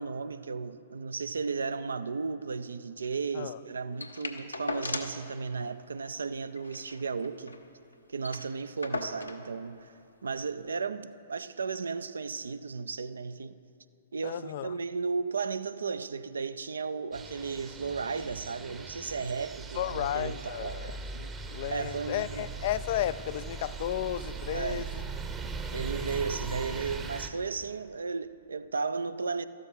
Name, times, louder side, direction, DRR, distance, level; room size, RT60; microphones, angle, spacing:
voice 1, 0.0-7.6 8.1-9.9 10.2-13.5 14.1-21.3 21.7-22.4 24.5-24.9 25.7-29.5, right 4 dB, 70° right, 0.5 m, -34 dB
sound 1, 4.0-5.3 5.6-5.7 6.0-6.2 6.6-7.6 7.9-8.0 8.2-9.5 10.4-10.5, left 3 dB, 80° left, 1.0 m, -38 dB
voice 2, 14.2-14.7 19.7-21.0 21.5-24.9, left 12 dB, 45° left, 0.3 m, -33 dB
sound 2, 17.1-27.3, right 5 dB, 15° right, 0.8 m, -39 dB
13.0 x 12.0 x 5.5 m
figure-of-eight pair, 115°, 0 cm